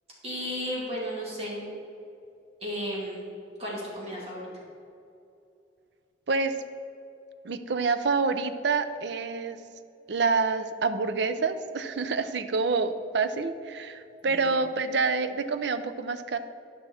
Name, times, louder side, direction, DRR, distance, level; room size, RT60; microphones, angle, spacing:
voice 1, 0.2-1.6 2.6-3.2 3.6-4.4 14.2-14.4, equal, 35° right, -6 dB, 2.3 m, -33 dB
voice 2, 7.4-9.6 10.1-16.4, right 4 dB, 65° right, 10 dB, 0.5 m, -27 dB
11.5 x 5.8 x 4.3 m, 2.6 s
head